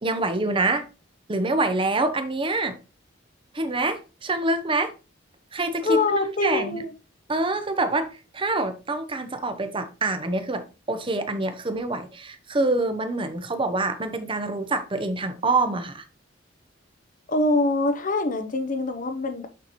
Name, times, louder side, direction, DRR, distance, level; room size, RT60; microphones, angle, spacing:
voice 1, 0.0-0.8 1.3-2.8 3.5-4.9 5.5-6.8 7.3-16.0, right 2 dB, 25° right, 0.8 m, -26 dB
voice 2, 5.8-6.9 17.3-19.5, left 2 dB, 45° left, 0.8 m, -24 dB
6.8 x 5.6 x 3.1 m
head